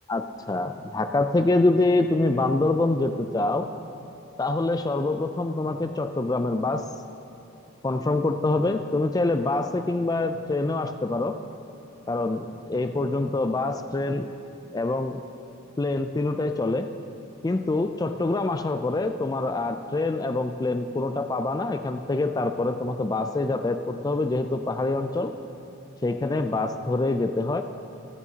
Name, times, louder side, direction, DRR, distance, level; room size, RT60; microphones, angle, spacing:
voice 1, 0.1-3.7 4.4-6.9 7.8-11.4 12.1-14.3 14.7-15.2 15.8-16.9 17.4-25.4 26.0-27.6, left 2 dB, 20° left, 7 dB, 0.3 m, -25 dB
23.0 x 9.7 x 2.8 m, 2.8 s
head